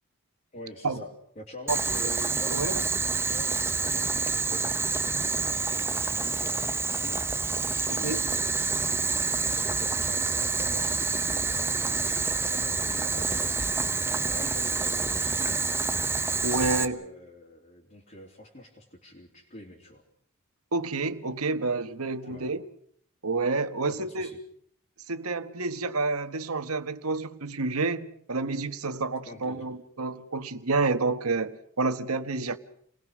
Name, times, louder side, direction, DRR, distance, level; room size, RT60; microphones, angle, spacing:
voice 1, 0.5-7.2 7.7-13.6 14.3-15.7 16.6-20.0 22.2-22.5 23.8-24.4 28.4-28.6 29.3-29.7, left 1 dB, 35° left, 3.0 m, -46 dB
Boiling, 1.7-16.8, right 4 dB, 10° right, 0.9 m, -28 dB
voice 2, 2.5-2.8 7.9-8.2 16.4-17.0 20.7-22.6 23.2-24.3 25.1-32.6, right 3 dB, 85° right, 1.4 m, -29 dB
29.5 x 20.0 x 6.3 m
head